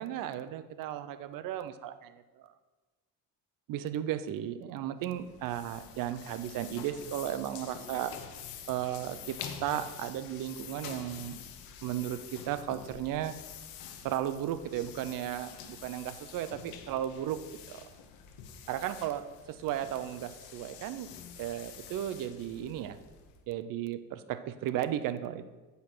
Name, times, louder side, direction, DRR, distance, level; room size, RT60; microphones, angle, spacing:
voice 1, 0.0-2.5 3.7-8.1 8.7-11.4 11.8-13.3 14.0-17.4 17.7-17.8 18.7-19.2 19.6-21.1 21.4-23.0 23.5-25.5, right 11 dB, 70° right, 11 dB, 0.7 m, -35 dB
sound 1, 5.0-23.5, left 8 dB, 90° left, 1.0 m, -47 dB
8.1 x 5.5 x 6.0 m, 1.2 s
cardioid pair, 110°, 35 cm